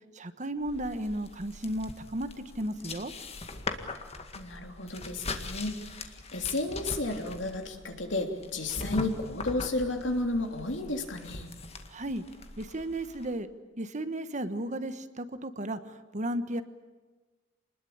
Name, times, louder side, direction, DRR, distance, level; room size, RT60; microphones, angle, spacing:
voice 1, 0.1-3.1 11.9-12.2 12.6-13.5 13.8-16.6, right 1 dB, 40° right, 11 dB, 1.3 m, -34 dB
sound 1, 0.6-13.3, left 3 dB, 35° left, 2.0 m, -41 dB
voice 2, 4.3-11.5, left 2 dB, 70° left, 4 dB, 3.3 m, -32 dB
27.0 x 20.5 x 8.8 m, 1.3 s
head